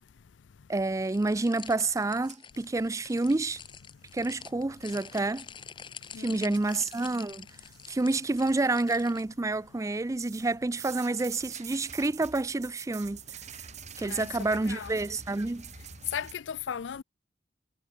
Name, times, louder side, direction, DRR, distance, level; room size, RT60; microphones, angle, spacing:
voice 1, 0.7-3.6 4.1-5.5 6.2-7.5 7.9-13.2 14.0-15.6, right 2 dB, 15° right, 0.4 m, -28 dB
sound 1, 1.0-9.2, left 7 dB, 25° left, 0.7 m, -47 dB
sound 2, 2.2-3.7 6.1-6.2 6.5-7.1 7.5-8.3 8.7-9.5 10.2-16.3, right 7 dB, 40° right, 2.1 m, -47 dB
voice 2, 6.1-6.6 14.0-14.9 16.1-17.0, left 7 dB, 75° left, 0.5 m, -37 dB
head